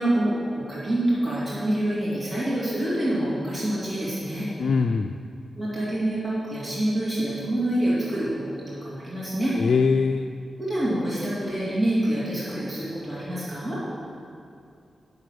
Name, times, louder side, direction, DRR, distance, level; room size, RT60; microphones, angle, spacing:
voice 1, 0.0-4.5 5.6-9.5 10.6-13.8, right 1 dB, 20° right, -9 dB, 2.8 m, -26 dB
voice 2, 4.6-5.1 9.6-10.3, left 5 dB, 65° left, 4 dB, 0.3 m, -22 dB
9.6 x 6.8 x 6.5 m, 2.4 s
cardioid pair, 65°, 0 cm